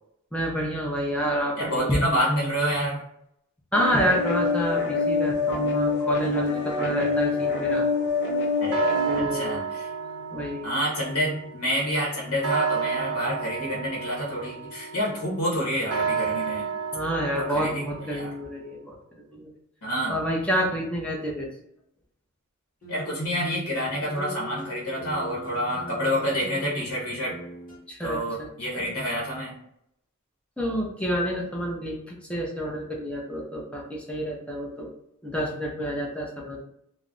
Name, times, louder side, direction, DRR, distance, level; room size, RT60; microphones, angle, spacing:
voice 1, 0.3-2.0 3.7-7.9 9.1-9.6 10.3-10.7 16.9-19.5 20.1-21.5 27.9-28.5 28.7-28.9 30.6-34.9 35.2-36.6, equal, 5° left, -2 dB, 0.5 m, -28 dB
voice 2, 1.6-3.0 8.6-8.8 9.1-9.9 10.6-16.6 17.4-18.3 19.8-20.2 22.9-27.4 28.0-29.5, equal, 80° left, -3 dB, 0.8 m, -28 dB
sound 1, 3.7-9.2, left 4 dB, 55° left, 0.5 m, -25 dB
sound 2, 7.4-18.6, right 6 dB, 90° right, 0.5 m, -32 dB
sound 3, 22.8-27.8, right 1 dB, 40° left, 1.0 m, -41 dB
2.3 x 2.0 x 3.7 m, 0.75 s
head